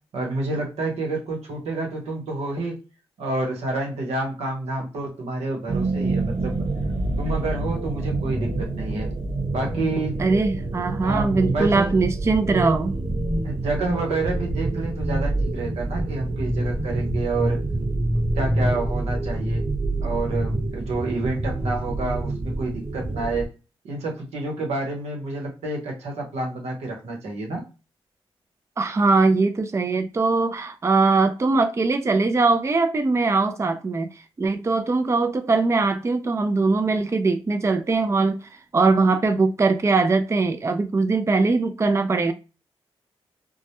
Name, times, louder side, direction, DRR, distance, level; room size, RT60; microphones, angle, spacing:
voice 1, 0.1-2.8 3.2-6.7 7.2-9.1 9.5-10.2 11.0-11.9 13.4-17.6 18.3-19.7 20.0-23.5 23.8-27.6, right 2 dB, 90° right, 0.9 m, -29 dB
sound 1, 5.7-23.5, right 2 dB, 50° right, 1.0 m, -26 dB
voice 2, 10.2-13.0 28.8-34.1 34.4-38.4 38.7-42.3, right 3 dB, 25° right, 0.4 m, -21 dB
2.1 x 2.1 x 2.9 m
cardioid pair, 60°, 11 cm